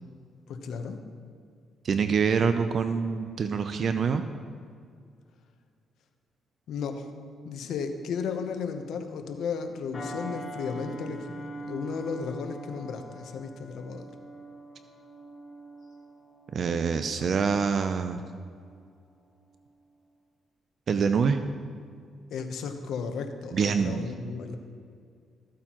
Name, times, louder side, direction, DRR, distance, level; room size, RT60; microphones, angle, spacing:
voice 1, 0.5-1.0 6.7-7.1 7.4-14.1 22.3-24.6, left 5 dB, 75° left, 7 dB, 0.9 m, -34 dB
voice 2, 1.8-4.2 16.5-18.2 20.9-21.4 23.5-24.0, right 6 dB, 55° right, 9 dB, 0.4 m, -25 dB
sound 1, 9.9-18.8 19.3-19.5, right 1 dB, 40° left, 2.6 m, -44 dB
14.0 x 8.6 x 3.0 m, 2.2 s
cardioid pair, 90°, 0 cm